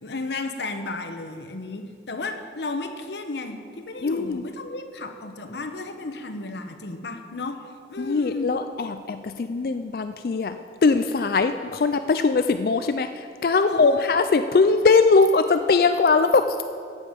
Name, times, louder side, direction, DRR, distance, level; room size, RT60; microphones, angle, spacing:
voice 1, 0.0-8.6 13.6-14.1, left 3 dB, 80° left, 7 dB, 1.0 m, -33 dB
voice 2, 4.0-4.4 8.0-16.6, left 4 dB, 55° left, 9 dB, 0.4 m, -21 dB
15.0 x 8.6 x 5.1 m, 2.3 s
head